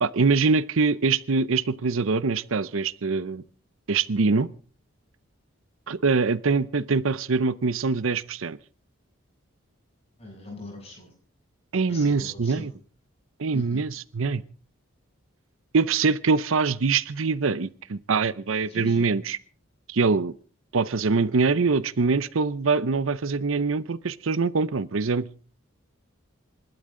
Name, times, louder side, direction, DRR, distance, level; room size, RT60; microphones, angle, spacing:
voice 1, 0.0-3.4 3.9-4.5 5.9-8.6 11.7-12.7 13.4-14.4 15.7-19.4 19.9-20.3 20.7-25.3, right 4 dB, 75° right, 17 dB, 0.7 m, -24 dB
voice 2, 10.2-11.1 11.9-12.7 13.5-13.8 18.7-19.0, left 1 dB, 30° left, 1 dB, 7.0 m, -41 dB
27.5 x 12.5 x 3.8 m, 0.40 s
head